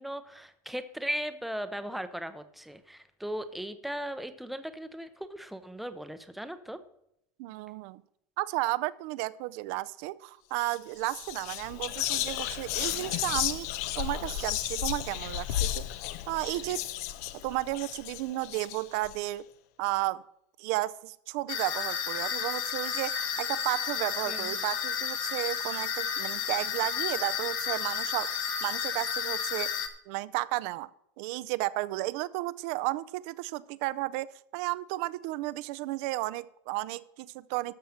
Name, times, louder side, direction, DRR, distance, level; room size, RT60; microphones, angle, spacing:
voice 1, 0.0-6.8 24.3-24.6, equal, ahead, 10 dB, 0.7 m, -37 dB
voice 2, 7.4-8.0 8.4-13.7 14.0-15.8 16.3-16.9 17.3-19.5 19.8-20.2 20.6-29.7 30.1-30.9 31.2-37.7, right 18 dB, 55° right, 17 dB, 0.5 m, -33 dB
Whispering, 10.6-10.8 11.0-19.1, left 13 dB, 65° left, 0.7 m, -33 dB
sound 1, 21.5-29.9, left 7 dB, 40° left, 1.3 m, -32 dB
13.0 x 6.4 x 5.7 m, 0.76 s
supercardioid pair, 155°, 9 cm